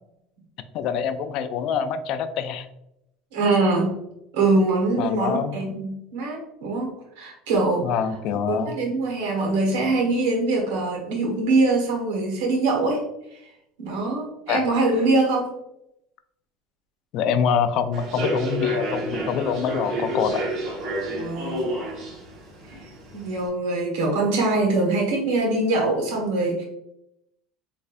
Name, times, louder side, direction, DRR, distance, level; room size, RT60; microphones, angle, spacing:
voice 1, 0.7-2.7 5.0-5.6 7.8-8.8 14.5-14.6 17.1-20.5, left 7 dB, 60° left, 10 dB, 0.3 m, -25 dB
voice 2, 3.3-3.9 4.3-6.9 7.2-7.9 8.5-13.0 13.8-15.5 21.2-21.7 23.1-26.6, right 2 dB, 85° right, 0 dB, 1.2 m, -23 dB
Human voice / Subway metro underground, 17.9-23.5, right 1 dB, 60° right, 1.2 m, -30 dB
4.0 x 2.6 x 2.5 m, 0.83 s
supercardioid pair, 125°, 0 cm